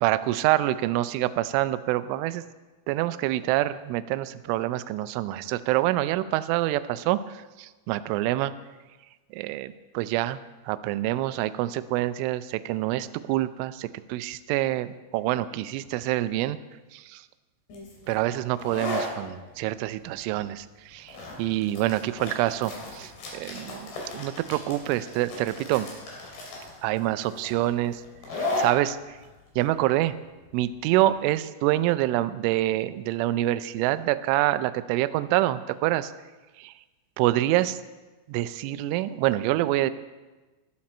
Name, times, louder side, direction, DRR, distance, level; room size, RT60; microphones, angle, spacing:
voice 1, 0.0-2.4 2.9-8.5 9.3-10.4 10.6-16.6 16.9-17.3 18.1-25.9 26.8-28.0 28.6-29.2 29.6-30.1 30.5-36.1 36.6-36.7 37.2-37.8 38.3-39.9, right 15 dB, 85° right, 13 dB, 2.9 m, -26 dB
sound 1, 17.7-31.1, left 2 dB, 55° left, 4.6 m, -36 dB
14.5 x 13.0 x 4.3 m, 1.2 s
omnidirectional pair, 5.8 m